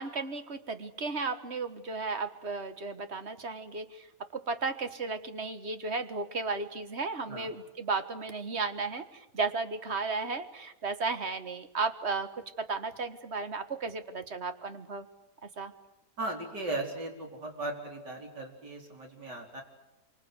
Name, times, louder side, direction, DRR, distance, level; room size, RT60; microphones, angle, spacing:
voice 1, 0.0-4.1 4.3-15.1 15.4-15.7, right 4 dB, 40° right, 9 dB, 1.7 m, -34 dB
voice 2, 16.2-19.6, right 2 dB, 85° right, 1 dB, 5.2 m, -37 dB
27.0 x 25.0 x 8.2 m, 0.96 s
omnidirectional pair, 1.8 m